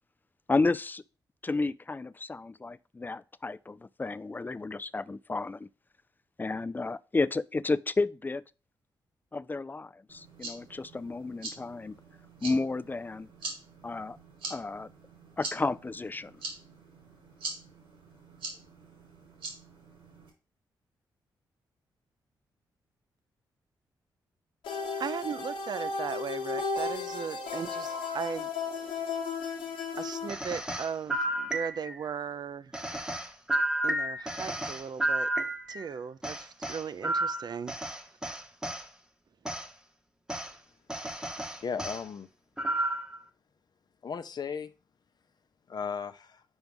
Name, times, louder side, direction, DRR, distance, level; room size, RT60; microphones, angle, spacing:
voice 1, 0.5-1.0 1.4-5.7 6.4-8.4 9.3-12.0 12.4-13.3 13.8-14.2 14.5-14.9 15.4-16.3, left 3 dB, 20° left, 0.4 m, -32 dB
sound 1, 10.1-20.3, right 3 dB, 85° right, 2.1 m, -44 dB
sound 2, 24.6-30.3, left 4 dB, 90° left, 1.0 m, -34 dB
voice 2, 25.0-28.5 28.8-29.1 30.0-32.7 33.8-35.3 35.7-37.8, right 6 dB, 55° right, 0.5 m, -37 dB
sound 3, 30.3-32.1 32.7-35.9 36.2-38.8 39.4-39.7 40.3-40.5 40.9-42.0 42.6-43.2, right 1 dB, 10° right, 1.0 m, -32 dB
voice 3, 41.6-42.3 44.0-44.7 45.7-46.4, left 6 dB, 55° left, 0.7 m, -35 dB
5.4 x 4.6 x 5.3 m
cardioid pair, 60°, 9 cm